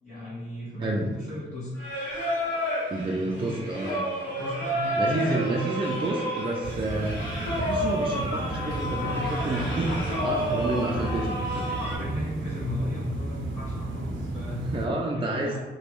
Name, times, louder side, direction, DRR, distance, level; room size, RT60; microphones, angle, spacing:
voice 1, 0.0-1.7 3.2-3.6 4.2-5.6 9.0-9.4 10.6-10.9 11.9-14.7 15.1-15.6, left 2 dB, 40° left, -11 dB, 1.3 m, -36 dB
voice 2, 0.8-1.1 2.9-4.1 5.0-7.2 7.5-11.8 14.7-15.6, right 2 dB, 25° right, -1 dB, 0.4 m, -29 dB
Singing, 1.8-12.0, equal, 65° left, 1.1 m, -30 dB
sound 1, 6.6-14.9, right 2 dB, 80° right, 0.5 m, -33 dB
2.9 x 2.2 x 3.0 m, 1.2 s
cardioid pair, 80°, 20 cm